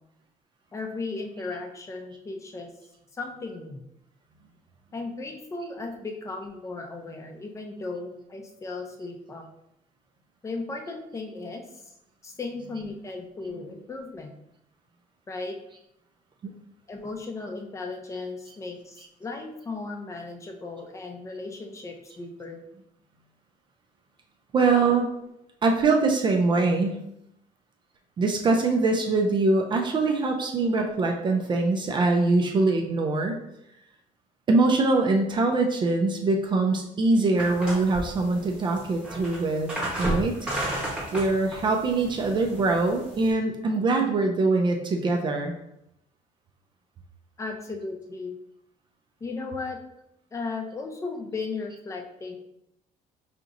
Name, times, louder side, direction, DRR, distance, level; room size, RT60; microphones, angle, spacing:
voice 1, 0.7-2.7 3.1-3.8 4.9-9.4 10.4-11.9 12.2-14.3 15.3-15.6 16.9-22.6 25.0-25.3 47.4-48.4 49.2-49.8 50.3-52.4, left 3 dB, 20° left, 3 dB, 0.5 m, -36 dB
voice 2, 24.5-25.1 25.6-27.0 28.2-33.4 34.5-40.5 41.1-45.5, right 3 dB, 35° right, 3 dB, 0.4 m, -23 dB
sound 1, 37.4-43.3, right 1 dB, 5° right, 1.0 m, -33 dB
5.0 x 2.9 x 2.5 m, 0.81 s
cardioid pair, 150°, 15 cm